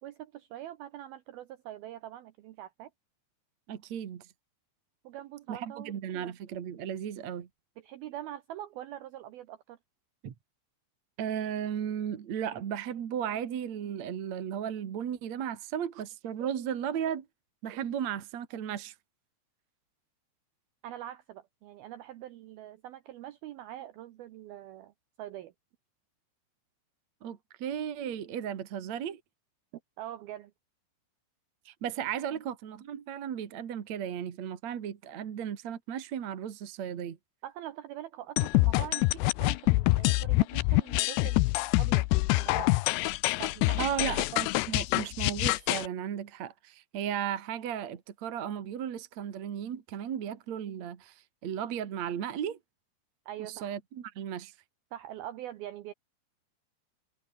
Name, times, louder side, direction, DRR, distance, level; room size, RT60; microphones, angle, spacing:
voice 1, 0.0-2.9 5.0-6.3 7.8-9.8 20.8-25.5 30.0-30.5 32.3-32.4 37.4-41.5 41.8-42.1 42.4-42.8 43.4-44.2 53.3-53.7 54.9-55.9, right 12 dB, 80° right, 2.1 m, -43 dB
voice 2, 3.7-4.3 5.5-7.5 10.2-10.3 11.2-17.3 17.6-18.9 27.2-29.2 31.7-37.2 43.8-52.6 53.4-54.5, right 9 dB, 50° right, 2.2 m, -35 dB
sound 1, 38.4-45.9, left 21 dB, 90° left, 2.4 m, -26 dB
omnidirectional pair, 5.6 m